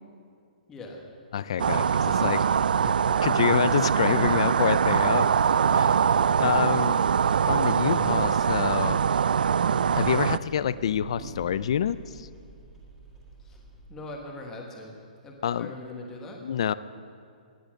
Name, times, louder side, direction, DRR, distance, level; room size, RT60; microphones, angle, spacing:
voice 1, 0.7-1.0 13.5-13.6 13.9-14.9 15.2-16.4, left 2 dB, 10° left, 0 dB, 1.3 m, -41 dB
voice 2, 1.3-2.4 2.8-2.9 3.2-5.3 5.7-6.1 6.4-7.0 7.5-9.0 9.9-12.3 15.4-15.7 16.4-16.7, left 9 dB, 40° left, 16 dB, 0.4 m, -27 dB
sound 1, 1.6-10.4, right 7 dB, 85° right, 0.4 m, -23 dB
sound 2, 7.5-13.9, right 1 dB, 10° right, 2.0 m, -46 dB
17.5 x 11.0 x 6.4 m, 2.3 s
hypercardioid pair, 180°, 5 cm